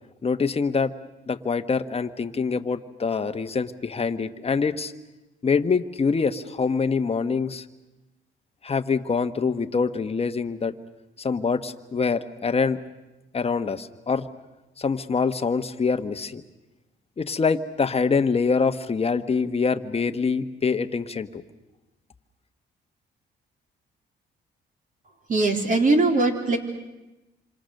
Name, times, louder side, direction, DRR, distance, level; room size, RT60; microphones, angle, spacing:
voice 1, 0.2-0.9 1.3-4.9 5.4-7.6 8.6-10.7 11.2-12.8 13.3-14.3 14.8-16.4 17.2-21.4, left 5 dB, 30° left, 8 dB, 1.2 m, -25 dB
voice 2, 25.3-26.6, right 2 dB, 40° right, 3 dB, 3.8 m, -20 dB
26.5 x 26.5 x 6.6 m, 1.0 s
cardioid pair, 90°, 20 cm